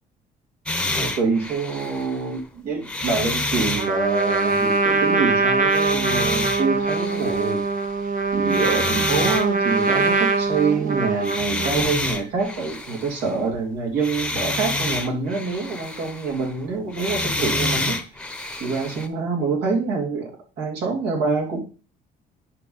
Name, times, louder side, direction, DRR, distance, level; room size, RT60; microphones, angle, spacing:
sound 1, 0.7-2.4 2.8-5.2 5.7-8.0 8.3-10.6 11.2-13.6 14.0-16.6 16.9-19.1, left 2 dB, 5° left, 1.0 m, -29 dB
voice 1, 0.9-7.6 8.3-18.0 18.6-20.3 20.6-21.6, right 4 dB, 80° right, -1 dB, 3.2 m, -26 dB
Trumpet, 3.8-11.9, right 4 dB, 55° right, 1.3 m, -22 dB
10.5 x 3.6 x 5.6 m, 0.34 s
cardioid pair, 110°, 17 cm